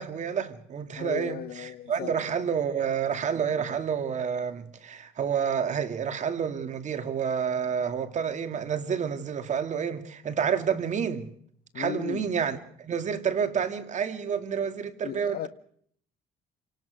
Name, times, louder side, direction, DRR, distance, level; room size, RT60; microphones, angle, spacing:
voice 1, 0.0-11.3 11.7-15.5, right 7 dB, 45° right, 2.4 m, -29 dB
voice 2, 1.0-2.1 11.7-12.3 15.0-15.5, left 12 dB, 65° left, 1.2 m, -36 dB
27.5 x 18.5 x 6.5 m
cardioid pair, 110°, 17 cm